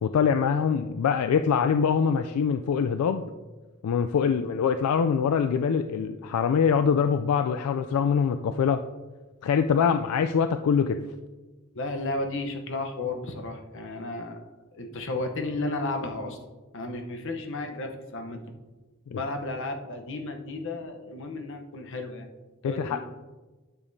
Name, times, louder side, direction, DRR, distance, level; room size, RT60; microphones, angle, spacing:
voice 1, 0.0-3.2 3.8-8.8 9.4-11.0 19.1-19.2 22.6-23.0, left 6 dB, 85° left, 8 dB, 0.3 m, -24 dB
voice 2, 11.7-14.5 14.7-16.4 16.7-18.4 19.1-22.3 22.6-23.0, left 2 dB, 60° left, 4 dB, 0.8 m, -33 dB
10.0 x 6.9 x 2.7 m, 1.2 s
head